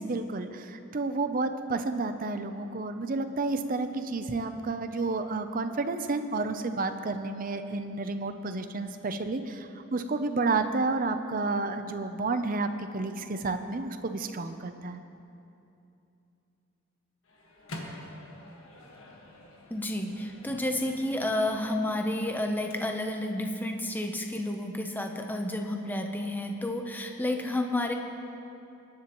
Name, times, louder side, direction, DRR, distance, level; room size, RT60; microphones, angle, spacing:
voice 1, 0.0-15.0, right 3 dB, 40° right, 9 dB, 0.6 m, -31 dB
Microwave oven, 17.2-23.3, left 1 dB, 75° left, 1.6 m, -47 dB
voice 2, 19.7-27.9, left 1 dB, 10° left, 3 dB, 0.7 m, -30 dB
21.5 x 10.5 x 3.0 m, 2.7 s
head